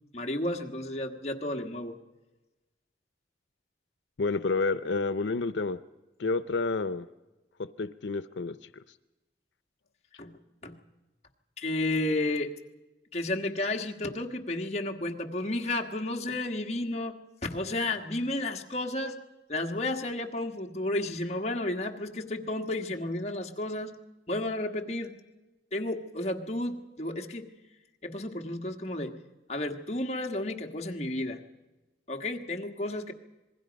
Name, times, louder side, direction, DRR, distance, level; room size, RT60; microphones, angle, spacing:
voice 1, 0.1-2.0 10.2-10.3 10.6-10.7 11.6-12.5 13.1-19.2 19.5-23.9 24.3-25.2 25.7-27.5 28.0-29.2 29.5-31.4 32.1-33.1, left 1 dB, 35° left, 2 dB, 1.5 m, -32 dB
voice 2, 4.2-5.8 6.2-7.1 7.6-8.8, left 3 dB, 90° left, 13 dB, 0.6 m, -30 dB
27.0 x 20.0 x 5.2 m, 1.1 s
head